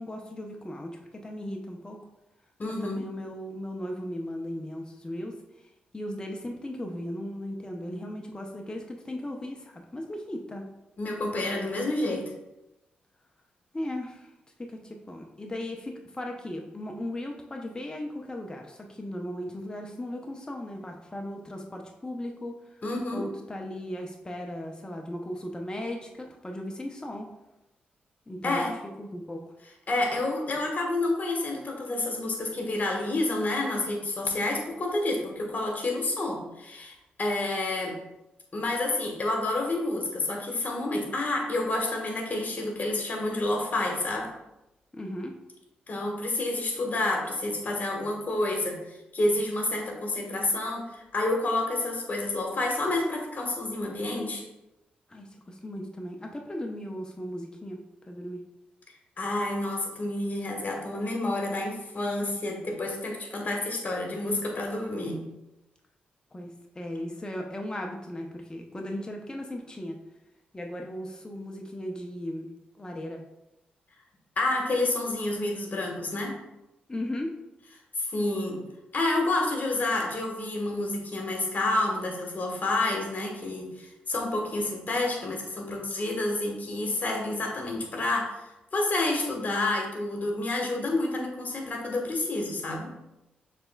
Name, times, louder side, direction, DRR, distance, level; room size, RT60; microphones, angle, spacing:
voice 1, 0.0-2.0 2.6-5.4 5.9-10.7 13.7-14.3 14.6-22.6 23.1-27.3 28.3-28.6 29.0-29.4 44.9-45.4 55.1-57.8 58.0-58.4 62.2-62.4 66.3-70.0 70.5-73.2 76.9-77.3, left 1 dB, 20° left, 1 dB, 0.6 m, -37 dB
voice 2, 2.6-3.0 11.0-12.2 22.8-23.3 28.4-28.7 29.9-37.9 38.5-44.3 45.9-54.4 59.2-65.2 74.4-76.3 78.0-78.6 78.9-88.4 88.7-92.9, left 2 dB, 45° left, 0 dB, 1.3 m, -29 dB
6.6 x 3.3 x 2.3 m, 0.92 s
supercardioid pair, 50°, 4 cm